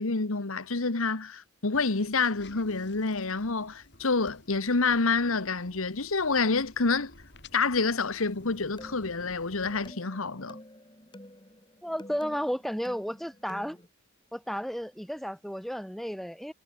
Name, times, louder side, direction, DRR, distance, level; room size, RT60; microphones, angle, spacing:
voice 1, 0.0-7.1 7.5-10.6, left 4 dB, 80° left, 1.4 m, -28 dB
sound 1, 1.7-9.9, left 2 dB, 55° left, 7.1 m, -54 dB
sound 2, 8.4-13.9, left 1 dB, 20° left, 3.3 m, -49 dB
voice 2, 11.8-13.8 14.3-16.5, equal, ahead, 2.8 m, -33 dB
head